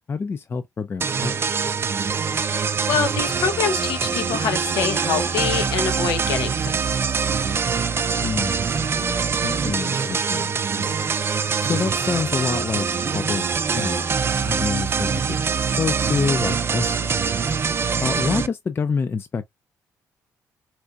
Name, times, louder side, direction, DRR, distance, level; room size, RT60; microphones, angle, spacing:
voice 1, 0.1-1.3 1.6-1.7 8.2-8.7 9.0-10.9 11.6-12.9 13.1-13.4 13.7-15.4 15.8-17.4 18.0-19.5, left 5 dB, 35° left, 0.4 m, -27 dB
sound 1, 1.0-18.5, right 6 dB, 40° right, 0.5 m, -24 dB
voice 2, 2.4-6.7, left 7 dB, 90° left, 0.8 m, -25 dB
4.4 x 2.5 x 2.3 m
cardioid pair, 70°, 6 cm